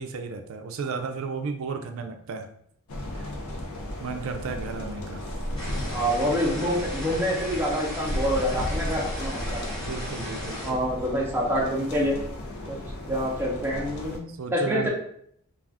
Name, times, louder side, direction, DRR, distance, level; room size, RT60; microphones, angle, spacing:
voice 1, 0.0-2.5 3.1-3.3 4.0-5.2 9.8-10.8 14.3-14.9, right 5 dB, 65° right, 5 dB, 0.4 m, -34 dB
sound 1, 2.9-14.2, left 1 dB, 75° left, 0.5 m, -34 dB
sound 2, 5.6-10.7, left 1 dB, 20° left, 0.9 m, -37 dB
voice 2, 5.9-9.6 10.6-12.2 12.7-12.8 13.1-14.2 14.5-14.9, equal, 10° right, -4 dB, 0.6 m, -26 dB
2.4 x 2.4 x 3.4 m, 0.67 s
head